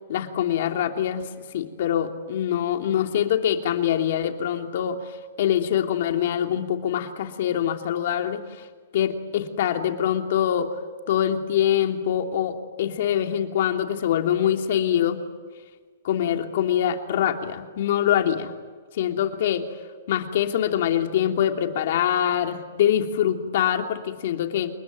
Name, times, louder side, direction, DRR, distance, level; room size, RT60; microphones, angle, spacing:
voice 1, 0.1-5.0 5.4-8.4 8.9-10.7 11.1-15.2 16.0-18.5 18.9-19.6 20.1-24.7, left 10 dB, 55° left, 5 dB, 3.0 m, -24 dB
29.0 x 22.0 x 9.4 m, 1.5 s
hypercardioid pair, 160°, 0 cm